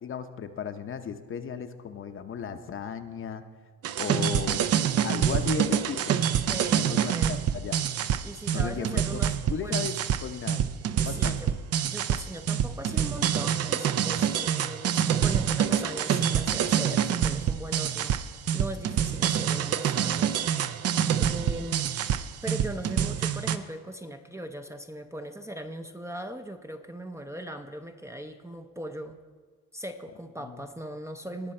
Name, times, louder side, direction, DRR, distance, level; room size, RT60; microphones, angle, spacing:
voice 1, 0.0-3.4 4.0-4.7 5.0-6.4 6.7-7.9 8.5-9.2 9.5-10.7 11.0-11.4 20.5-20.8 30.4-30.7, left 7 dB, 40° left, 8 dB, 0.8 m, -35 dB
sound 1, 3.8-23.6, right 9 dB, 50° right, 0.6 m, -26 dB
voice 2, 6.5-7.3 8.2-9.9 11.0-18.2 18.5-20.9 21.2-22.0 22.4-29.2 29.7-31.5, right 1 dB, 10° right, 6 dB, 0.6 m, -39 dB
18.5 x 6.2 x 4.3 m, 1.5 s
cardioid pair, 95°, 31 cm